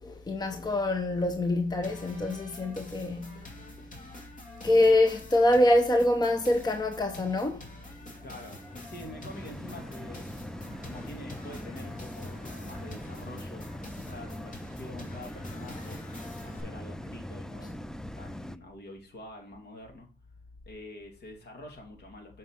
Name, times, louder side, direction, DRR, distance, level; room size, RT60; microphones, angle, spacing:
voice 1, 0.0-3.5 4.6-7.7, left 1 dB, 20° left, 0.8 m, -25 dB
sound 1, 1.8-16.6, left 1 dB, 40° left, 2.5 m, -48 dB
sound 2, 7.6-18.6, left 1 dB, 5° left, 0.4 m, -42 dB
voice 2, 8.2-10.3 10.8-13.7 14.1-16.0 16.4-17.9 18.2-20.1 20.7-22.4, left 1 dB, 60° left, 2.6 m, -46 dB
7.4 x 5.4 x 3.7 m
cardioid pair, 90°, 20 cm